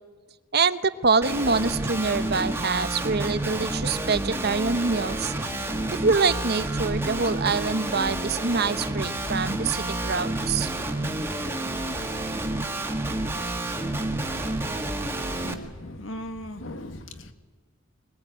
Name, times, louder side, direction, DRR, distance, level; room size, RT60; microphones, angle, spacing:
voice 1, 0.5-5.3 6.0-10.7, right 4 dB, 50° right, 13 dB, 0.9 m, -25 dB
Guitar, 1.2-15.5, right 1 dB, 10° right, 1.7 m, -29 dB
voice 2, 15.4-17.3, left 1 dB, 60° left, 9 dB, 1.8 m, -38 dB
21.5 x 21.0 x 9.3 m, 1.4 s
head